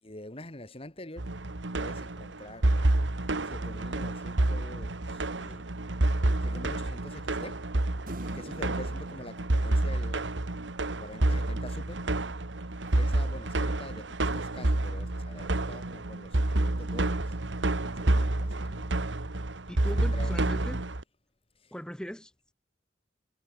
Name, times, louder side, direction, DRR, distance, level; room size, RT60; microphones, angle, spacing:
voice 1, 0.0-1.4 1.7-5.8 6.4-7.7 8.3-10.2 10.9-12.1 12.5-17.4 17.7-19.1 20.1-20.6 21.5-21.7, left 1 dB, 30° left, 3.0 m, -46 dB
sound 1, 1.2-21.0, right 2 dB, 90° right, 1.6 m, -29 dB
sound 2, 8.1-10.7 12.2-14.3, right 1 dB, 50° right, 5.0 m, -49 dB
voice 2, 19.7-20.8 21.7-22.5, equal, 5° left, 1.9 m, -39 dB
head